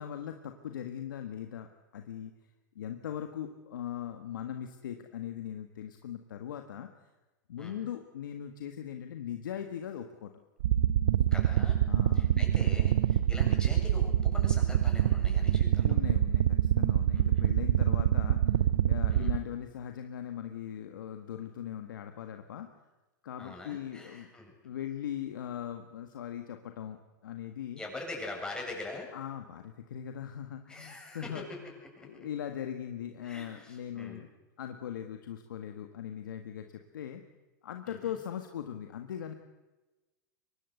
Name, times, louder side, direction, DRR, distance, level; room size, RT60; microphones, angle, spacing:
voice 1, 0.0-2.3 2.8-6.9 7.5-10.3 11.9-12.4 15.8-22.7 23.2-24.3 24.6-27.8 29.1-31.7 32.0-34.3 34.6-37.2 37.6-39.3, left 9 dB, 85° left, 6 dB, 1.7 m, -40 dB
voice 2, 7.6-7.9 11.3-11.8 12.1-16.0 17.1-17.5 19.1-19.3 23.4-24.5 27.8-29.1 30.7-32.3 33.2-34.2 37.9-38.2, left 2 dB, 10° left, 1 dB, 7.5 m, -44 dB
sound 1, 10.6-19.4, right 11 dB, 75° right, 1.0 m, -25 dB
24.0 x 19.5 x 8.0 m, 1.1 s
hypercardioid pair, 120°, 10 cm